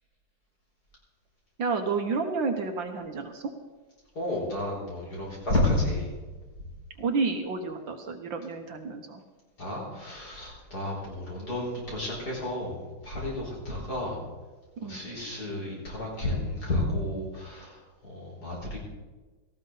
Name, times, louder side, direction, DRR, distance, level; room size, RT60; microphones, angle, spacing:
voice 1, 1.6-3.5 7.0-9.2 14.8-15.0, right 4 dB, 65° right, 5 dB, 1.7 m, -30 dB
voice 2, 4.2-6.1 9.6-14.2 14.8-18.8, left 1 dB, 45° left, -3 dB, 5.3 m, -31 dB
18.0 x 14.0 x 4.0 m, 1.2 s
omnidirectional pair, 2.4 m